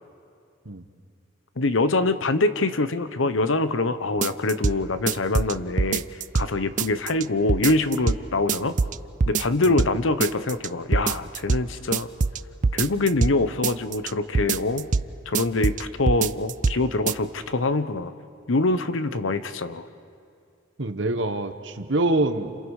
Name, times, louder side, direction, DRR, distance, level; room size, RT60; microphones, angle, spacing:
voice 1, 1.6-8.7 9.3-12.1 12.7-14.9 15.3-18.1 18.5-19.9, left 2 dB, 80° left, 12 dB, 0.9 m, -24 dB
sound 1, 4.2-4.8 5.1-6.5 6.8-7.2 7.5-8.2 8.5-9.0 9.2-9.9 10.2-10.7 10.9-11.6 11.9-13.4 13.6-14.1 14.4-15.1 15.4-16.8 17.1-17.2, right 4 dB, 40° right, 0.5 m, -23 dB
voice 2, 20.8-22.6, right 2 dB, 65° right, 9 dB, 1.2 m, -25 dB
29.5 x 28.0 x 4.9 m, 2.4 s
head